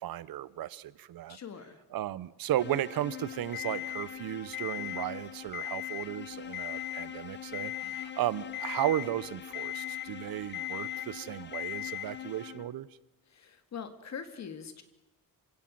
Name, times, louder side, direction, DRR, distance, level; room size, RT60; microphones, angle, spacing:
voice 1, 0.0-1.4 1.9-12.9, right 13 dB, 80° right, 20 dB, 0.9 m, -35 dB
voice 2, 1.3-1.8 7.8-8.0 13.3-14.8, left 7 dB, 50° left, 10 dB, 2.2 m, -43 dB
sound 1, 2.6-12.9, left 10 dB, 30° left, 1.0 m, -45 dB
Alarm, 3.5-4.1 4.5-5.1 5.5-6.1 6.5-7.1 7.5-8.1 8.5-9.1 9.5-10.1 10.5-11.1 11.5-12.1, left 13 dB, 85° left, 1.9 m, -37 dB
27.5 x 17.0 x 7.7 m, 1.1 s
wide cardioid pair, 175°, 35 cm